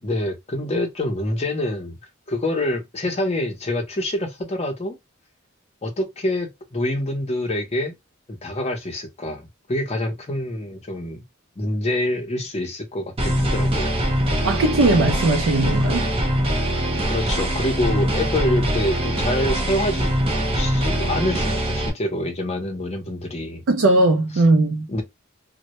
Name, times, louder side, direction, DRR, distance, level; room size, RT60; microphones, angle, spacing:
voice 1, 0.0-2.0 2.3-5.0 5.8-7.9 8.3-11.2 11.6-14.0 17.1-20.1 20.5-23.6 24.9-25.0, left 1 dB, 30° left, 0.6 m, -26 dB
sound 1, 13.2-21.9, right 1 dB, 30° right, 0.7 m, -22 dB
voice 2, 14.4-16.1 23.7-25.0, right 2 dB, 70° right, 0.4 m, -19 dB
2.1 x 2.1 x 2.8 m
head